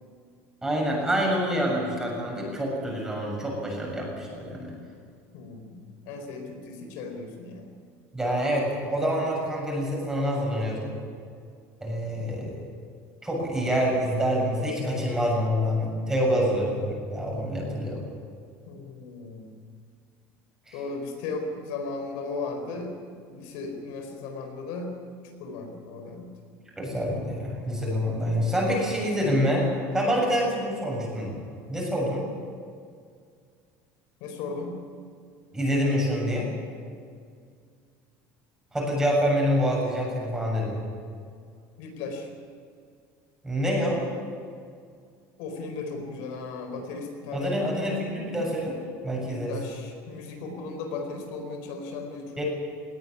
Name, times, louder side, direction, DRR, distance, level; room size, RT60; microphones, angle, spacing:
voice 1, 0.6-4.7 8.1-10.9 11.8-12.5 13.2-18.0 20.7-20.8 26.8-29.7 29.9-31.4 31.7-32.2 35.5-36.5 38.7-40.8 43.4-44.0 47.3-48.8 49.0-49.5 52.4-52.5, equal, 10° right, -2 dB, 7.1 m, -26 dB
voice 2, 5.3-7.7 12.1-12.5 18.7-19.5 20.7-23.0 23.3-25.0 25.4-26.3 34.2-34.8 41.8-42.3 45.4-47.6 48.7-48.8 49.1-52.4, left 3 dB, 70° left, 4 dB, 4.5 m, -36 dB
19.0 x 17.0 x 10.0 m, 2.2 s
cardioid pair, 160°, 7 cm